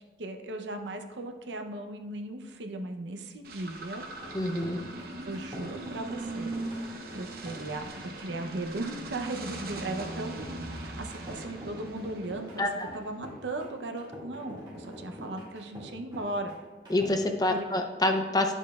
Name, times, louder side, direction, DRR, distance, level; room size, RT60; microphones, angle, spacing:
voice 1, 0.2-4.1 5.0-6.5 7.1-7.9 8.2-12.7 12.9-16.6 17.5-17.7, right 2 dB, 80° right, 5 dB, 0.7 m, -37 dB
sound 1, 3.4-13.0, right 2 dB, 55° right, 0.9 m, -40 dB
sound 2, 4.1-17.1, equal, 25° right, 1.9 m, -45 dB
voice 2, 4.3-4.8 12.6-12.9 16.9-18.5, left 1 dB, 20° left, 5 dB, 0.5 m, -27 dB
10.0 x 7.1 x 2.3 m, 1.3 s
head